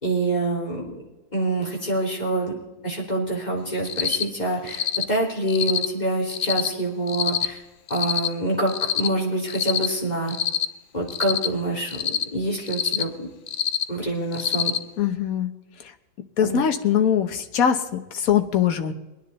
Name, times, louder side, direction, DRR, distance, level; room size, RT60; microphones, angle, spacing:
voice 1, 0.0-0.9 1.3-2.6 2.8-7.6 7.9-10.4 10.9-13.3 13.9-14.7 16.4-16.6, right 1 dB, 25° left, -3 dB, 3.3 m, -26 dB
Cricket, 3.8-4.2 4.7-5.0 5.5-5.9 6.3-6.7 7.1-7.5 7.9-8.3 8.7-9.1 9.5-9.9 10.3-10.7 11.1-11.5 11.9-12.2 12.7-13.0 13.5-13.8 14.3-14.8, left 8 dB, 80° left, 0.4 m, -25 dB
voice 2, 15.0-15.5 16.4-18.9, left 8 dB, 65° left, 7 dB, 1.5 m, -22 dB
22.5 x 10.0 x 4.1 m, 1.0 s
omnidirectional pair, 1.7 m